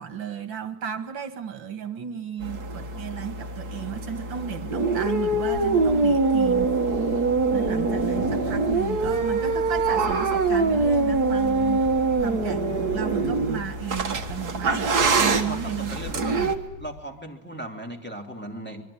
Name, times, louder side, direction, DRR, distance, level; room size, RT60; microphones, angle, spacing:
voice 1, 0.0-7.2 7.5-11.9 12.2-16.0 16.3-16.5, right 8 dB, 85° right, 2.5 m, -34 dB
sound 1, 2.4-16.6, right 3 dB, 55° right, 2.2 m, -24 dB
sound 2, 5.5-17.0, left 2 dB, 40° left, 1.6 m, -41 dB
voice 2, 14.8-16.4 16.8-18.8, right 1 dB, 5° left, 2.9 m, -37 dB
25.0 x 22.0 x 9.9 m
omnidirectional pair, 2.0 m